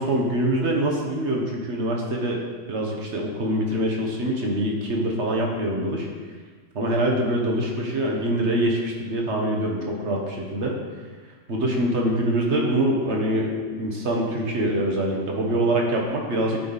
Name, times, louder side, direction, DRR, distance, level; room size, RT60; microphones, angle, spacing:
voice 1, 0.0-2.4 2.7-6.1 6.7-10.8 11.5-16.6, right 1 dB, 60° right, 0 dB, 1.5 m, -24 dB
10.5 x 5.3 x 4.1 m, 1.5 s
omnidirectional pair, 1.3 m